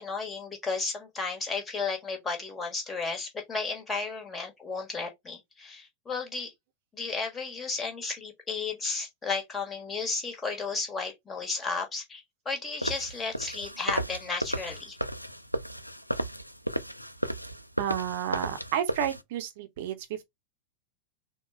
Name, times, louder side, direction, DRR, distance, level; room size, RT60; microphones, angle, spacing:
voice 1, 0.0-6.5 6.9-15.0, left 4 dB, 15° left, 1.4 m, -33 dB
sound 1, 12.8-19.2, equal, 90° left, 0.3 m, -34 dB
voice 2, 17.8-20.2, right 10 dB, 50° right, 0.8 m, -31 dB
3.9 x 2.3 x 4.2 m
figure-of-eight pair, 90°, 0 cm